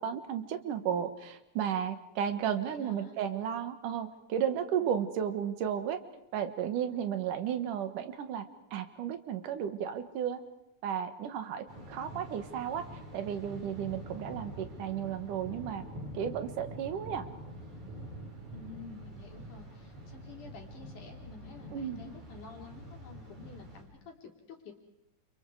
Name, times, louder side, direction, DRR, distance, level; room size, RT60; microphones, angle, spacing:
voice 1, 0.0-6.0 6.3-8.4 8.7-10.4 10.8-12.9 13.1-15.8 16.1-17.2 21.7-22.0, right 9 dB, 90° right, 9 dB, 3.1 m, -33 dB
voice 2, 2.7-3.2 4.8-4.9 18.5-24.7, left 4 dB, 75° left, 2 dB, 5.0 m, -50 dB
Thunder, 11.7-23.8, equal, 65° right, 6.9 m, -46 dB
29.5 x 28.5 x 4.9 m, 0.85 s
omnidirectional pair, 3.6 m